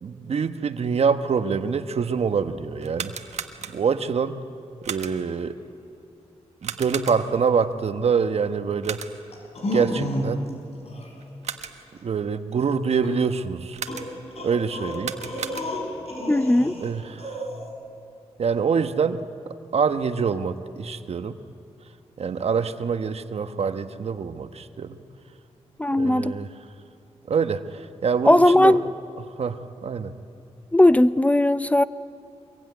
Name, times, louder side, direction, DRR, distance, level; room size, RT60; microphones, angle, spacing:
voice 1, 0.0-3.2 3.7-4.4 4.9-5.6 6.6-9.0 9.7-10.5 12.0-13.8 14.4-15.2 16.8-17.5 18.4-19.3 19.7-21.4 22.2-25.0 26.0-26.5 27.3-28.8 29.4-30.1, right 6 dB, 65° right, 9 dB, 1.2 m, -25 dB
sound 1, 2.8-4.1 4.8-5.4 6.6-7.5 8.8-9.4 11.2-12.0 13.7-14.4 14.9-16.0, right 7 dB, 85° right, 1.4 m, -36 dB
sound 2, 9.3-10.5 10.9-11.1 13.0-13.1 13.9-16.9 17.2-17.7, equal, 65° left, 6.1 m, -31 dB
voice 2, 16.3-16.8 25.8-26.4 28.3-28.8 30.7-31.8, left 1 dB, 10° left, 14 dB, 0.5 m, -17 dB
25.0 x 22.5 x 9.5 m, 2.8 s
cardioid pair, 80°, 11 cm